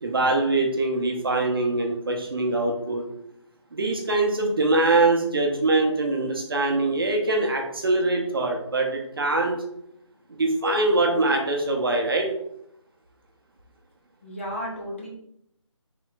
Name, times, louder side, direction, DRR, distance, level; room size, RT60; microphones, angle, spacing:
voice 1, 0.0-3.0 3.7-9.6 10.3-12.3, right 2 dB, 45° right, 2 dB, 0.7 m, -23 dB
voice 2, 14.2-15.1, equal, 25° left, -3 dB, 0.6 m, -33 dB
4.1 x 3.6 x 2.2 m, 0.75 s
figure-of-eight pair, 170°, 16 cm